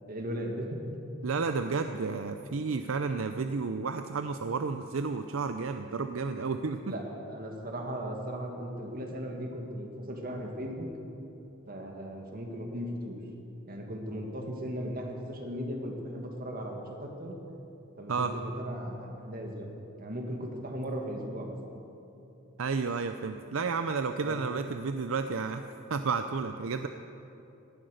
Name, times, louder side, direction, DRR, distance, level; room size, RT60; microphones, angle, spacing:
voice 1, 0.1-0.8 1.9-2.1 6.6-7.0 7.3-10.9 11.7-13.2 13.7-17.4 18.0-19.7 20.0-21.5 24.2-24.5, equal, 45° right, 2 dB, 2.1 m, -37 dB
voice 2, 1.2-6.8 18.1-18.3 22.6-25.6 25.9-26.9, right 4 dB, 70° right, 8 dB, 0.5 m, -31 dB
17.5 x 12.0 x 6.5 m, 2.9 s
head